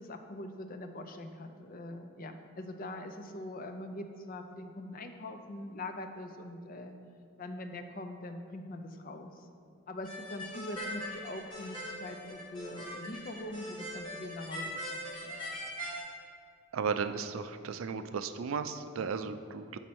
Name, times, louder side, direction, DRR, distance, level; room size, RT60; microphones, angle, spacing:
voice 1, 0.0-6.9 7.4-9.5 9.9-15.3, left 1 dB, 40° left, 6 dB, 0.5 m, -43 dB
sound 1, 10.0-16.0, equal, 25° left, 1.5 m, -41 dB
voice 2, 16.7-19.8, right 5 dB, 75° right, 10 dB, 0.4 m, -35 dB
7.7 x 5.3 x 4.2 m, 2.3 s
head